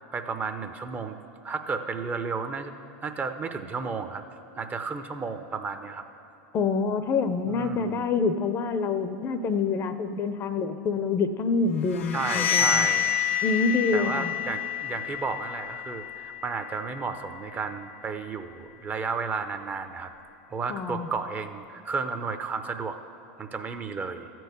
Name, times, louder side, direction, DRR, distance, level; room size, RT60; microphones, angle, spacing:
voice 1, 0.1-1.2 1.4-2.7 3.0-4.2 4.6-6.0 7.4-8.0 12.1-13.1 13.9-20.1 20.5-23.0 23.4-24.3, right 5 dB, 25° right, 8 dB, 0.6 m, -33 dB
voice 2, 6.5-12.9 13.4-14.3 20.7-21.1, left 4 dB, 35° left, 10 dB, 0.6 m, -26 dB
sound 1, 11.9-17.6, left 9 dB, 85° left, 0.5 m, -29 dB
13.0 x 4.6 x 8.2 m, 2.7 s
supercardioid pair, 115°, 7 cm